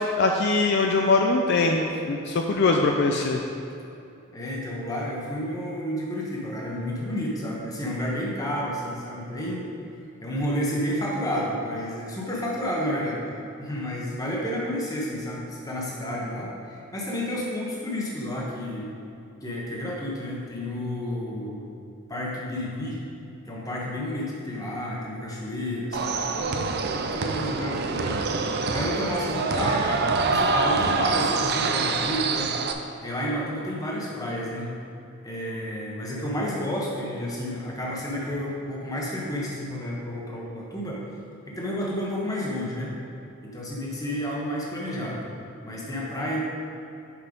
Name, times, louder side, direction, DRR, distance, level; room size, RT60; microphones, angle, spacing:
voice 1, 0.0-3.4, left 3 dB, 50° left, 2 dB, 0.4 m, -22 dB
voice 2, 4.3-9.7 10.2-13.2 13.6-18.9 19.4-21.7 22.1-23.0 23.5-26.6 27.1-32.5 33.0-34.8 35.2-41.0 41.5-42.9 43.4-45.2 45.6-46.4, equal, 15° left, -4 dB, 1.0 m, -31 dB
sound 1, 25.9-32.7, right 4 dB, 50° right, 0.4 m, -25 dB
5.9 x 5.7 x 5.1 m, 2.7 s
head